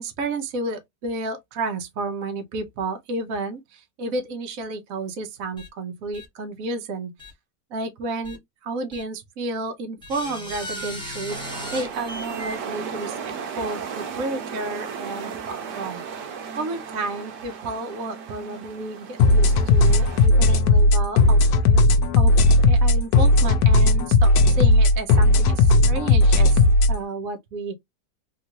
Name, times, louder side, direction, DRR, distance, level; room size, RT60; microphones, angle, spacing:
voice 1, 0.0-7.1 7.7-11.4 11.7-21.8 22.2-22.3 22.7-26.6 26.9-27.7, right 2 dB, 55° right, 1.2 m, -31 dB
sound 1, 5.6-5.7 6.1-6.3 7.2-7.3 8.2-8.4 8.9-9.0 10.0-12.6, equal, 5° left, 1.0 m, -36 dB
sound 2, 11.3-20.3, right 6 dB, 75° right, 1.4 m, -35 dB
sound 3, 19.2-26.9, left 2 dB, 70° left, 1.1 m, -16 dB
3.6 x 2.5 x 2.9 m
omnidirectional pair, 1.9 m